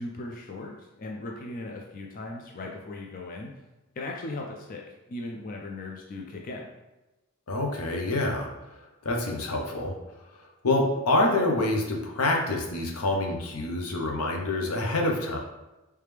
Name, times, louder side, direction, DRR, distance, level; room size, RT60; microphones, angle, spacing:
voice 1, 0.0-3.6 4.0-6.7, left 2 dB, 40° left, 0 dB, 0.3 m, -38 dB
voice 2, 7.5-8.5 9.0-9.9 10.6-15.4, left 2 dB, 80° left, 1 dB, 0.7 m, -26 dB
3.3 x 3.2 x 3.3 m, 1.0 s
head